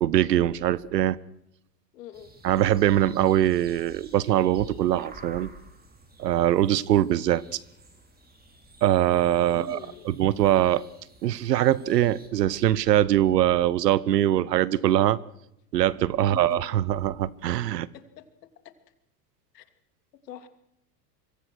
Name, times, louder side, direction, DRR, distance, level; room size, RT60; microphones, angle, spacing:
voice 1, 0.0-1.2 2.4-5.5 6.2-7.6 8.8-9.8 10.0-10.8 11.2-15.2 15.7-17.9, right 12 dB, 85° right, 22 dB, 1.1 m, -22 dB
voice 2, 1.9-2.3 9.5-10.1 16.2-16.6 17.9-18.2 19.5-19.7 20.2-20.5, left 9 dB, 80° left, 9 dB, 2.9 m, -43 dB
sound 1, 2.1-12.3, right 2 dB, 20° right, 5.9 m, -50 dB
25.5 x 23.5 x 6.4 m, 0.79 s
hypercardioid pair, 90°, 48 cm